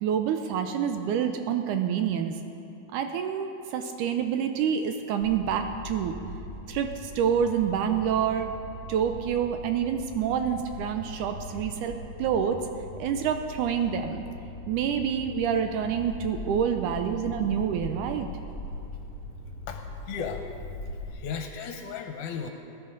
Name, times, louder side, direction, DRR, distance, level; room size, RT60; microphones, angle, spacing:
voice 1, 0.0-2.4 2.9-6.1 6.7-8.5 8.9-12.6 13.0-14.2 14.7-18.3, right 8 dB, 80° right, 6 dB, 2.0 m, -27 dB
sound 1, 5.2-21.1, left 2 dB, 25° left, 2.5 m, -41 dB
voice 2, 19.7-20.5 21.1-22.5, left 6 dB, 75° left, 4 dB, 2.0 m, -35 dB
19.0 x 10.5 x 3.8 m, 2.7 s
omnidirectional pair, 3.8 m